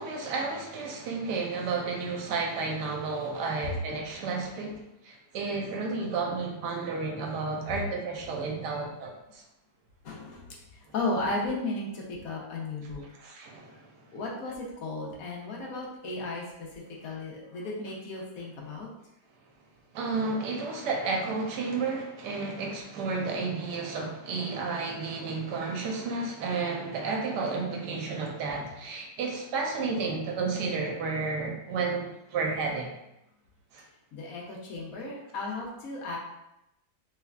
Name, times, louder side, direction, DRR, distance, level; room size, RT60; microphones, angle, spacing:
voice 1, 0.0-9.4 13.2-13.9 19.9-32.9 33.7-33.8, right 4 dB, 85° right, 1 dB, 1.2 m, -32 dB
voice 2, 10.0-13.0 14.1-18.9 34.1-36.2, left 2 dB, 65° left, -3 dB, 1.1 m, -35 dB
3.2 x 3.2 x 2.3 m, 0.86 s
omnidirectional pair, 1.8 m